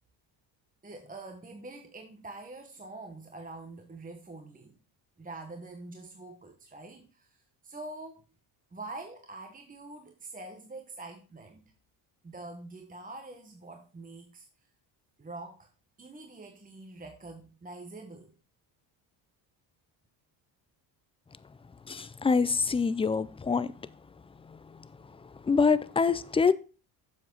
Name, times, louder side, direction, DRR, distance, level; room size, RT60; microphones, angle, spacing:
voice 1, 0.8-4.8 5.2-8.3 8.7-11.7 12.2-14.5 15.2-15.7 16.0-18.3, right 2 dB, 15° right, 1.1 m, -45 dB
voice 2, 21.9-23.7 24.5-24.6 25.4-26.5, left 5 dB, 15° left, 0.3 m, -25 dB
7.5 x 7.2 x 3.9 m
cardioid pair, 90°, 47 cm